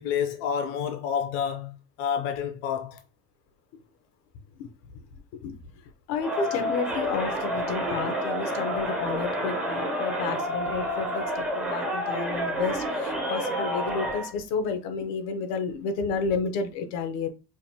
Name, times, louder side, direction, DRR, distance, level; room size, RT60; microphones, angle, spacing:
voice 1, 0.0-3.0, left 8 dB, 55° left, 0.6 m, -29 dB
voice 2, 6.1-17.3, left 5 dB, 90° left, 0.9 m, -31 dB
Crowd, 6.2-14.3, equal, 5° right, 0.4 m, -29 dB
5.0 x 2.2 x 2.7 m
cardioid pair, 180°, 45 cm